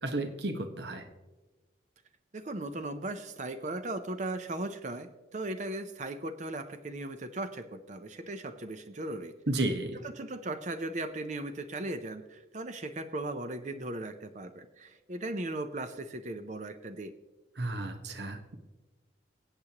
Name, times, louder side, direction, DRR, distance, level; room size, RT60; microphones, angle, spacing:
voice 1, 0.0-1.1 9.5-10.0 17.6-18.5, right 2 dB, 70° right, 7 dB, 1.2 m, -33 dB
voice 2, 2.3-9.3 10.2-17.1, right 2 dB, 40° right, 9 dB, 0.6 m, -37 dB
24.5 x 8.4 x 3.0 m, 1.2 s
head